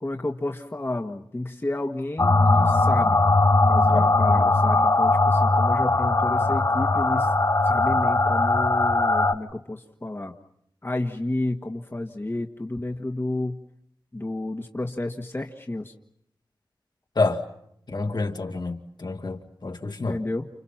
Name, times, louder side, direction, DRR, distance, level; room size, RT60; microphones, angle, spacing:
voice 1, 0.0-3.2 3.7-7.3 7.6-10.3 10.8-13.6 14.1-15.9 20.1-20.5, left 2 dB, 30° left, 1.6 m, -31 dB
sound 1, 2.2-9.3, left 2 dB, 45° left, 1.4 m, -20 dB
voice 2, 17.9-20.2, left 3 dB, 65° left, 2.4 m, -28 dB
30.0 x 29.5 x 5.9 m
wide cardioid pair, 75°, 8 cm